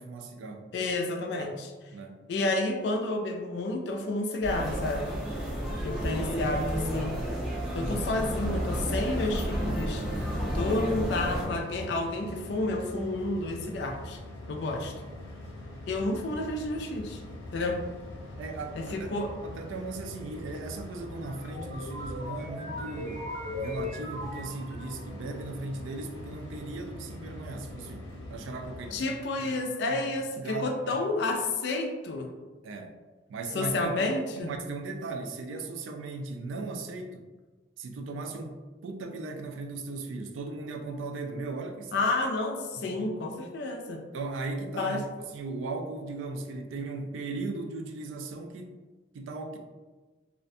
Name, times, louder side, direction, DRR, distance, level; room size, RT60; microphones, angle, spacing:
voice 1, 0.0-0.9 1.3-1.5 1.9-2.2 11.8-11.9 18.4-23.3 23.6-29.2 29.4-29.5 29.9-30.0 30.4-31.0 32.6-33.0 33.3-33.7 34.4-37.2 37.8-42.0 42.8-43.1 44.1-48.7 49.1-49.6, right 3 dB, 85° right, 4 dB, 0.3 m, -37 dB
voice 2, 0.7-1.7 2.3-5.1 5.8-7.1 7.7-10.0 10.5-14.2 14.5-15.0 15.9-17.2 17.5-17.8 18.7-19.3 28.9-32.3 33.5-34.5 41.9-44.0 44.8-45.0, left 2 dB, 65° left, 3 dB, 0.3 m, -30 dB
sound 1, 4.4-11.4, equal, 5° right, 0.5 m, -31 dB
sound 2, 9.9-29.0, left 1 dB, 80° left, 0.8 m, -43 dB
sound 3, 21.0-25.2, left 2 dB, 45° right, 0.6 m, -39 dB
2.4 x 2.1 x 2.6 m, 1.3 s
head